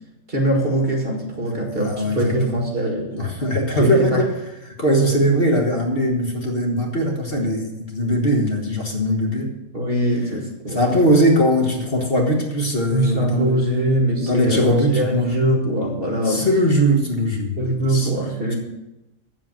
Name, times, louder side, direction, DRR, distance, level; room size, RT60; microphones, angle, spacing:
voice 1, 0.3-3.2 3.8-4.2 9.7-11.0 12.9-16.5 17.6-18.6, right 1 dB, 40° right, 1 dB, 2.2 m, -22 dB
voice 2, 1.4-2.6 3.2-4.3 4.6-9.5 10.7-13.5 14.2-15.4 16.2-17.6 17.9-18.1, equal, 45° left, 1 dB, 1.7 m, -20 dB
8.1 x 7.5 x 7.4 m, 0.94 s
omnidirectional pair, 1.4 m